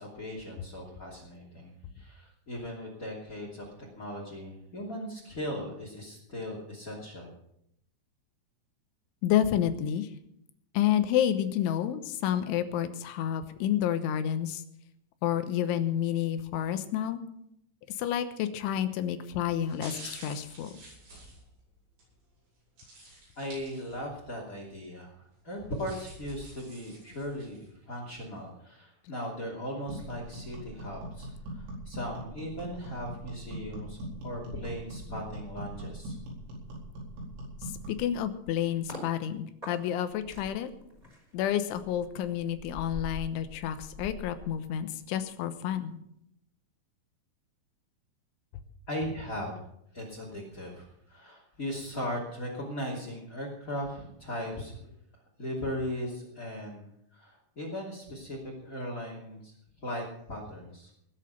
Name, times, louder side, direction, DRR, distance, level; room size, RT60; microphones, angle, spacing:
voice 1, 0.0-1.7 1.9-7.3 23.4-25.1 25.4-36.2 48.9-49.6 49.9-54.9 55.4-56.8 57.1-59.5 59.8-60.9, equal, 25° left, -4 dB, 2.3 m, -38 dB
voice 2, 9.2-10.1 10.8-14.6 15.2-17.2 18.0-20.7 37.9-40.7 41.3-46.0, left 10 dB, 80° left, 10 dB, 3.4 m, -29 dB
sound 1, 18.6-18.9 19.5-22.1 22.8-24.2 24.6-24.7 25.5-27.7 28.2-28.3, right 2 dB, 60° right, 10.0 m, -49 dB
sound 2, 29.9-38.1, right 1 dB, 85° right, 6.9 m, -41 dB
sound 3, 37.8-39.1 39.6-45.2 45.5-45.8, left 2 dB, 10° right, 3.2 m, -45 dB
20.0 x 7.4 x 7.0 m, 0.76 s
omnidirectional pair, 5.6 m